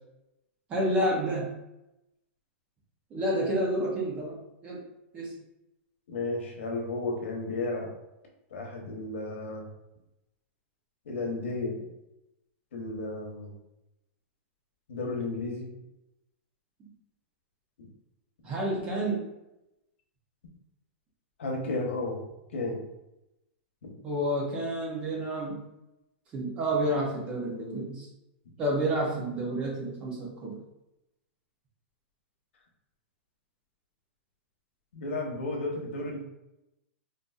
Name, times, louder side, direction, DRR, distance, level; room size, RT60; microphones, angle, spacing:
voice 1, 0.7-1.6 3.1-4.8 5.1-5.3 18.4-19.2 24.0-25.6 26.3-28.1 28.6-30.6, right 1 dB, 15° right, -2 dB, 0.6 m, -29 dB
voice 2, 6.1-7.9 8.5-9.7 11.0-11.8 12.7-13.5 14.9-15.7 17.8-17.9 21.4-22.2 22.5-22.8 23.8-23.9 34.9-36.2, left 2 dB, 90° left, 0 dB, 1.0 m, -33 dB
3.9 x 2.5 x 2.4 m, 0.90 s
supercardioid pair, 175°, 6 cm